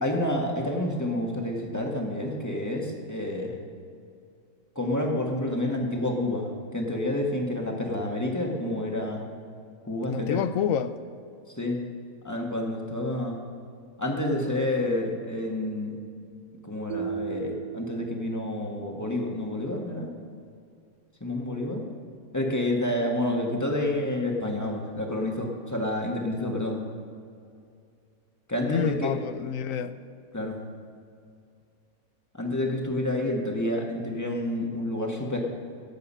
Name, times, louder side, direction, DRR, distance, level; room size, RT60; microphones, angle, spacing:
voice 1, 0.0-3.5 4.7-6.5 6.7-9.2 9.8-10.5 11.6-11.8 12.2-13.4 14.0-15.9 16.6-20.1 21.2-21.8 22.3-26.8 28.5-29.1 30.3-30.6 32.4-35.4, left 1 dB, 10° left, 0 dB, 1.6 m, -29 dB
voice 2, 10.1-10.9 28.7-29.9, left 9 dB, 70° left, 13 dB, 1.0 m, -28 dB
sound 1, 16.9-19.1, right 7 dB, 90° right, 1.1 m, -36 dB
17.5 x 8.1 x 5.6 m, 2.3 s
omnidirectional pair, 1.5 m